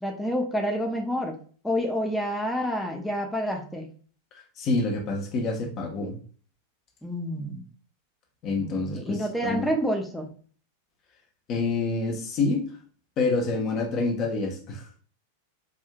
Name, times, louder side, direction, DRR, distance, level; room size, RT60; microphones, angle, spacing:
voice 1, 0.0-1.4 1.6-3.9 7.0-7.7 8.6-10.3, equal, 5° left, 1 dB, 0.7 m, -28 dB
voice 2, 4.6-6.2 8.4-9.7 11.5-12.7 13.2-14.8, left 3 dB, 35° left, 2 dB, 0.9 m, -27 dB
4.9 x 2.7 x 2.2 m, 0.43 s
figure-of-eight pair, 90°, 0 cm